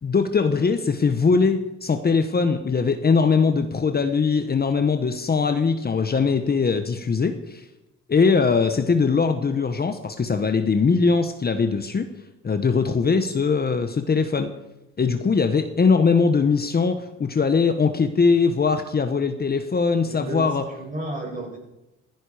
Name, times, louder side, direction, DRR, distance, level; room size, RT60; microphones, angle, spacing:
voice 1, 0.0-7.6 8.1-12.1 12.4-14.5 15.0-20.6, left 5 dB, 30° left, 8 dB, 1.2 m, -21 dB
voice 2, 20.0-20.5 20.8-21.6, right 1 dB, 25° right, -1 dB, 7.5 m, -32 dB
15.5 x 15.0 x 5.0 m, 0.98 s
cardioid pair, 90°, 30 cm